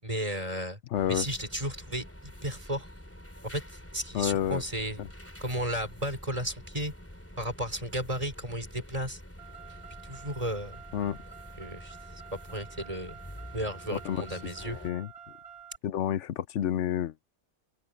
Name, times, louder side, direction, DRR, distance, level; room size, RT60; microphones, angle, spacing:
voice 1, 0.0-0.8 1.1-2.9 3.4-5.0 5.4-6.9 7.4-9.2 10.0-10.8 11.6-12.0 12.5-13.2 13.5-14.8, equal, 30° right, 5.6 m, -34 dB
voice 2, 0.9-1.3 4.1-4.6 5.0-5.1 10.9-11.2 14.0-14.2 14.6-15.1 15.8-17.3, left 10 dB, 90° left, 1.1 m, -29 dB
sound 1, 0.9-14.9, equal, 10° left, 3.6 m, -47 dB
Car, 9.4-15.8, right 8 dB, 55° left, 6.2 m, -49 dB
open air
omnidirectional pair, 1.2 m